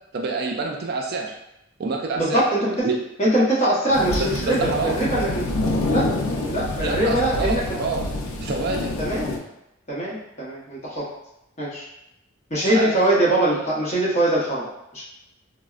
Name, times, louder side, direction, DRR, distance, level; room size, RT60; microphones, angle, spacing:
voice 1, 0.1-1.3 1.8-2.4 2.8-3.0 4.2-5.0 6.8-8.1 8.4-8.9 12.6-12.9, right 4 dB, 50° right, 1 dB, 0.3 m, -27 dB
voice 2, 2.2-2.9 3.2-5.4 5.9-6.1 6.5-7.6 9.0-9.4 9.9-11.0 11.6-11.8 12.5-14.6 14.9-15.0, right 1 dB, 35° left, -7 dB, 0.9 m, -22 dB
sound 1, 3.9-9.4, left 2 dB, 90° left, 0.5 m, -27 dB
4.1 x 2.0 x 2.4 m, 0.86 s
head